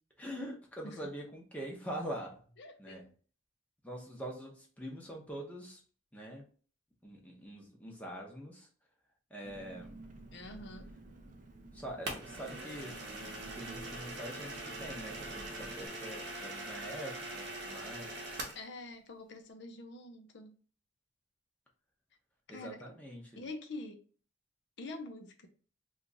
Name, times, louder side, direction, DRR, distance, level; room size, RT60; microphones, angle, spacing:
voice 1, 0.2-2.4 2.8-3.1 3.8-5.8 6.1-6.5 7.0-8.7 9.3-10.0 11.7-18.2 22.5-23.4, right 1 dB, 5° left, 0.8 m, -44 dB
voice 2, 2.6-3.1 10.3-10.9 18.5-20.5 22.5-22.8 23.4-24.0 24.8-25.5, left 2 dB, 60° left, 0.5 m, -46 dB
Engine, 9.4-15.9, right 2 dB, 40° right, 0.5 m, -52 dB
sound 1, 12.1-18.7, right 2 dB, 55° right, 0.8 m, -42 dB
2.9 x 2.4 x 3.9 m
head